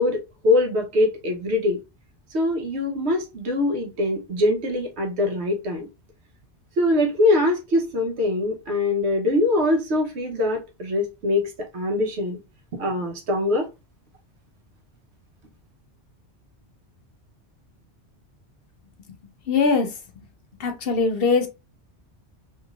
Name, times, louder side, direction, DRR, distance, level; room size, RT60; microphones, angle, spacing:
voice 1, 0.0-1.8 2.3-5.9 6.8-12.4 12.7-13.7, left 2 dB, 75° right, 1.1 m, -23 dB
voice 2, 19.5-20.2 20.6-21.5, left 4 dB, 60° left, 0.7 m, -22 dB
3.0 x 2.8 x 2.3 m
omnidirectional pair, 1.2 m